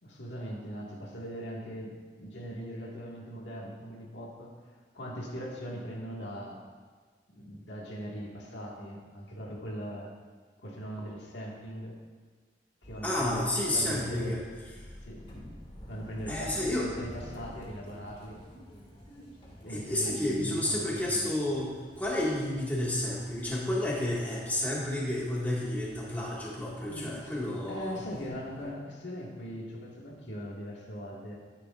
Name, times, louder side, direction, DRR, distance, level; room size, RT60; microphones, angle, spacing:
voice 1, 0.0-4.5 4.9-6.6 7.3-10.1 10.6-12.0 12.8-14.4 15.0-15.3 15.9-18.4 19.6-21.3 26.9-31.4, equal, 75° left, -3 dB, 1.9 m, -40 dB
sound 1, 12.8-28.7, equal, 30° left, 1.9 m, -50 dB
voice 2, 13.0-14.4 16.3-16.9 19.7-28.0, left 1 dB, 10° left, -6 dB, 1.9 m, -31 dB
13.0 x 9.9 x 2.5 m, 1.5 s
head